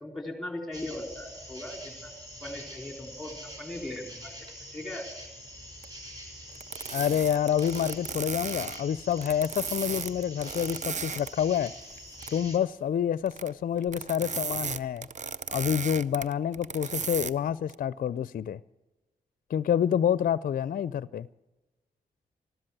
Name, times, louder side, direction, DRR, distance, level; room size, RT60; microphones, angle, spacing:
voice 1, 0.0-2.1 2.4-4.3 4.7-5.1, left 1 dB, ahead, 3.9 m, -38 dB
sound 1, 0.7-12.6, equal, 20° right, 5.7 m, -45 dB
hamp rope creaks, 5.8-5.9 6.5-11.3 11.7-12.4 13.3-13.5 13.8-17.3 17.7-17.8, right 5 dB, 45° right, 0.6 m, -35 dB
voice 2, 6.9-11.7 12.3-15.1 15.5-18.6 19.5-21.3, left 9 dB, 55° left, 0.4 m, -28 dB
14.0 x 13.0 x 7.6 m
supercardioid pair, 40°, 18 cm